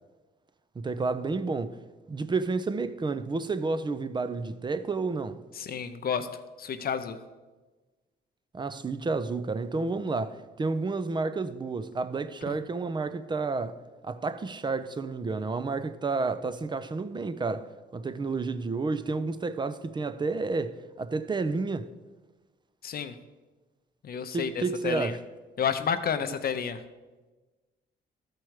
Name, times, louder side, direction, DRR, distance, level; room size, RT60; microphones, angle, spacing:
voice 1, 0.8-1.8 2.1-5.4 8.5-21.9 24.3-25.2, right 3 dB, 25° right, 0.5 m, -30 dB
voice 2, 5.6-7.2 12.5-12.6 22.8-23.2 24.0-25.2 25.6-26.8, left 7 dB, 50° left, 0.6 m, -31 dB
13.0 x 4.6 x 4.8 m
cardioid pair, 90°, 20 cm